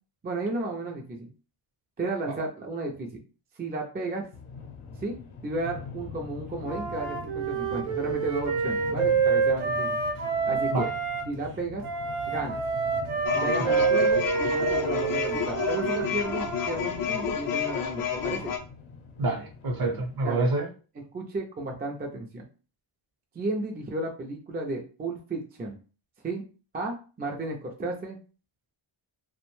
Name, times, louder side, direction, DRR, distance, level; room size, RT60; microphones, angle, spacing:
voice 1, 0.2-1.3 2.0-3.1 3.6-4.3 5.0-5.2 5.4-10.0 10.5-10.9 11.3-11.8 12.3-12.6 13.3-18.5 20.2-20.5 21.1-22.4 23.3-25.8 26.2-26.5 26.7-28.2, right 2 dB, 20° right, 1 dB, 0.4 m, -33 dB
sound 1, 4.3-20.3, left 4 dB, 80° left, 0.7 m, -43 dB
Wind instrument woodwind instrument, 6.6-11.3 11.8-16.7, right 5 dB, 85° right, 0.8 m, -27 dB
sound 2, 13.3-18.6, left 8 dB, 45° left, 0.4 m, -30 dB
voice 2, 19.2-20.7, right 2 dB, 45° right, 3 dB, 0.7 m, -28 dB
2.5 x 2.1 x 3.1 m, 0.36 s
cardioid pair, 105°, 50 cm